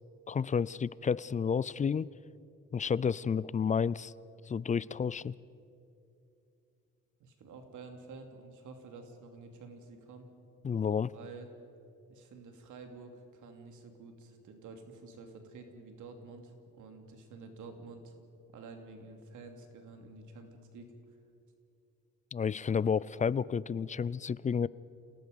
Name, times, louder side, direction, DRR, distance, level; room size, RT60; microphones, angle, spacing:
voice 1, 0.3-2.1 2.7-4.1 4.5-5.3 10.6-11.1 22.3-24.7, left 6 dB, 25° left, 21 dB, 0.4 m, -31 dB
voice 2, 7.2-10.3 11.1-11.5 12.1-18.1 18.5-20.9, right 3 dB, 80° right, 4 dB, 2.8 m, -50 dB
28.0 x 18.0 x 5.3 m, 2.7 s
cardioid pair, 90°, 30 cm